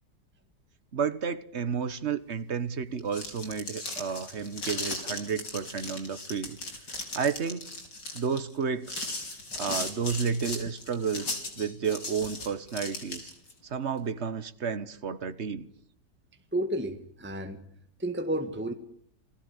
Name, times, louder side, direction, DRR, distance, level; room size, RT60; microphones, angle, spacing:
voice 1, 0.9-6.6 7.1-7.7 8.1-9.0 9.6-13.3 13.6-15.7, right 6 dB, 40° right, 1.5 m, -31 dB
sound 1, 2.9-13.5, left 2 dB, 75° left, 5.4 m, -37 dB
voice 2, 16.5-17.6 18.0-18.7, right 1 dB, 5° right, 1.6 m, -31 dB
29.5 x 19.0 x 9.9 m
omnidirectional pair, 1.9 m